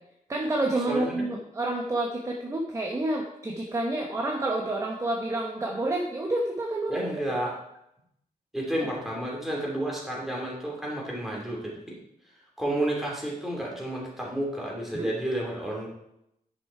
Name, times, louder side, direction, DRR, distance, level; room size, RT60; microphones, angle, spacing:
voice 1, 0.3-7.0 7.3-7.4 14.9-15.1, right 2 dB, 20° right, 0 dB, 0.9 m, -29 dB
voice 2, 0.9-1.3 6.9-7.5 8.5-12.0 12.6-15.9, right 1 dB, ahead, -3 dB, 2.6 m, -31 dB
10.0 x 5.9 x 4.7 m, 0.81 s
wide cardioid pair, 160°, 14 cm